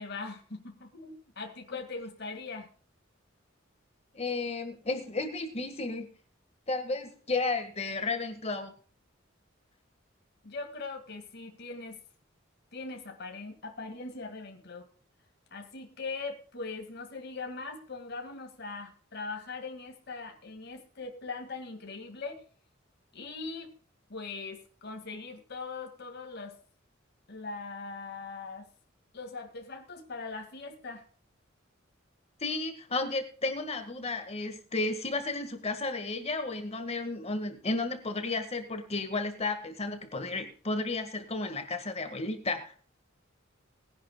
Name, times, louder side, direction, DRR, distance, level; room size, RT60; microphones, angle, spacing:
voice 1, 0.0-2.7 10.4-12.0 12.7-14.9 15.5-22.4 23.1-23.8 24.1-26.6 27.3-28.7 29.1-31.0, left 3 dB, 55° left, 3 dB, 2.2 m, -41 dB
voice 2, 4.1-6.1 6.7-8.7 32.4-42.7, left 3 dB, 35° left, 7 dB, 1.7 m, -33 dB
21.0 x 10.5 x 2.3 m, 0.42 s
head